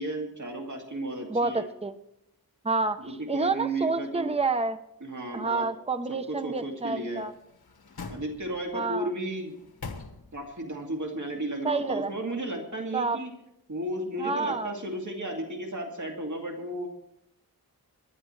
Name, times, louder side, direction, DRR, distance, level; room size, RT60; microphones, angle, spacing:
voice 1, 0.0-1.7 3.1-4.3 5.0-5.7 6.1-7.3 8.1-9.6 10.3-13.3 13.7-16.9, right 1 dB, 50° right, 1 dB, 2.4 m, -34 dB
voice 2, 1.3-1.9 2.6-4.8 5.3-7.3 8.7-9.1 11.6-12.1 12.9-13.2 14.2-14.7, right 3 dB, 15° right, 10 dB, 0.7 m, -29 dB
sound 1, 7.1-8.8 9.3-10.6 11.0-11.1, left 4 dB, 80° left, 1.4 m, -43 dB
24.0 x 11.0 x 3.2 m, 0.81 s
wide cardioid pair, 75°, 37 cm